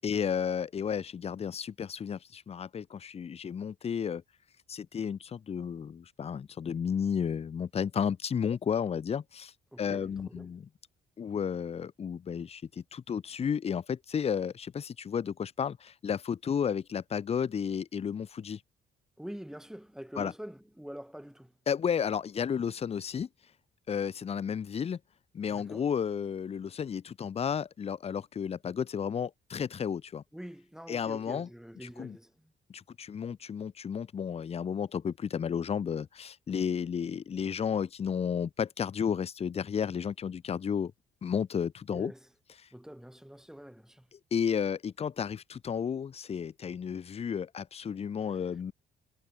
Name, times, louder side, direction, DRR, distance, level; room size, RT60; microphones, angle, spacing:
voice 1, 0.0-4.2 4.7-9.5 9.8-10.6 11.2-18.6 20.2-20.3 21.7-23.3 23.9-25.0 25.3-30.2 30.9-31.5 32.0-32.2 32.7-40.9 41.2-42.1 44.3-48.7, left 7 dB, 30° left, 0.5 m, -32 dB
voice 2, 9.7-10.5 19.2-21.5 25.5-25.9 30.3-32.5 41.9-42.3 42.7-44.1, equal, ahead, 2.2 m, -45 dB
cardioid pair, 90°, 20 cm